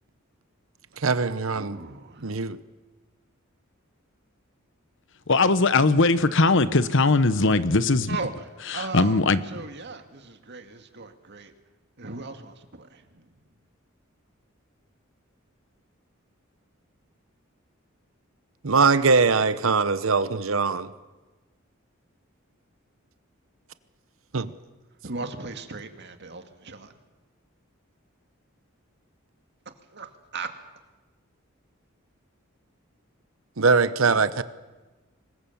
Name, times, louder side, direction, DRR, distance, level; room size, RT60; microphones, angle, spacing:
voice 1, 1.0-1.8 2.2-2.6 18.6-20.9 24.3-24.5 33.6-34.4, right 4 dB, 75° right, 1.0 m, -21 dB
voice 2, 1.5-2.3 8.1-11.5 12.0-13.2 25.0-26.9 29.9-30.1 30.3-30.5, right 3 dB, 55° right, 2.1 m, -37 dB
voice 3, 5.3-8.1 8.7-9.4, left 3 dB, 65° left, 1.1 m, -20 dB
25.5 x 21.0 x 7.2 m
head